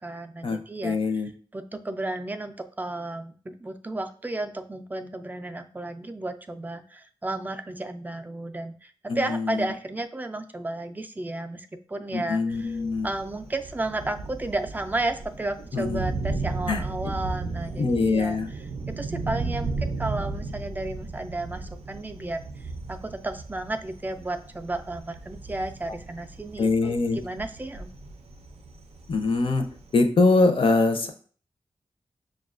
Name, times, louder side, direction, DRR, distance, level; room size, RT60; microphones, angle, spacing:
voice 1, 0.0-12.8 13.0-18.7 19.0-27.9, right 2 dB, 15° right, 7 dB, 0.3 m, -33 dB
voice 2, 0.8-1.3 9.1-9.4 12.1-13.1 15.7-16.0 16.7-16.8 17.8-18.5 26.6-27.2 29.1-29.6 29.9-31.1, left 3 dB, 60° left, 6 dB, 0.5 m, -23 dB
Thunder, 12.5-30.0, right 3 dB, 90° right, 0.4 m, -35 dB
6.1 x 2.3 x 2.4 m, 0.43 s
wide cardioid pair, 115°, 10 cm